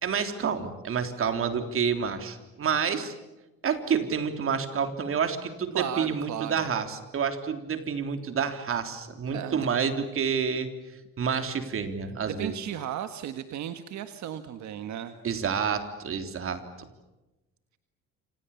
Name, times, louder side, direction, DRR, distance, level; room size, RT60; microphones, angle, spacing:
voice 1, 0.0-3.1 3.6-10.7 11.2-12.5 15.2-16.6, right 6 dB, 45° right, 7 dB, 3.5 m, -29 dB
voice 2, 5.7-6.7 9.3-9.7 12.2-15.2, right 10 dB, 70° right, 9 dB, 1.6 m, -35 dB
28.5 x 26.5 x 7.2 m, 1.0 s
cardioid pair, 140°, 29 cm